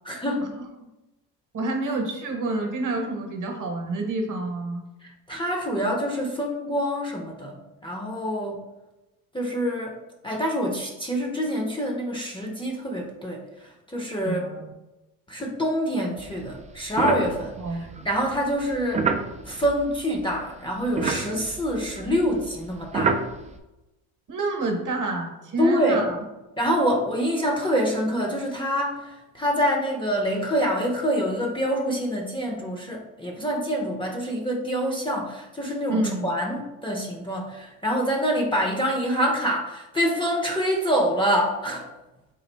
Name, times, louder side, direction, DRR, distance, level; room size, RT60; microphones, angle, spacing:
voice 1, 0.0-0.5 5.0-8.6 9.3-10.0 10.2-13.4 13.9-14.5 15.3-17.5 18.0-19.1 19.5-23.2 25.6-26.0 26.6-41.8, equal, 10° left, 0 dB, 0.6 m, -26 dB
voice 2, 1.5-4.8 14.2-14.6 17.6-17.9 24.3-26.2 35.9-36.3, right 2 dB, 45° right, 2 dB, 1.0 m, -28 dB
sound 1, 16.2-20.4 20.7-23.6, right 5 dB, 20° right, 0.3 m, -30 dB
4.0 x 2.4 x 3.3 m, 0.99 s
supercardioid pair, 70°, 42 cm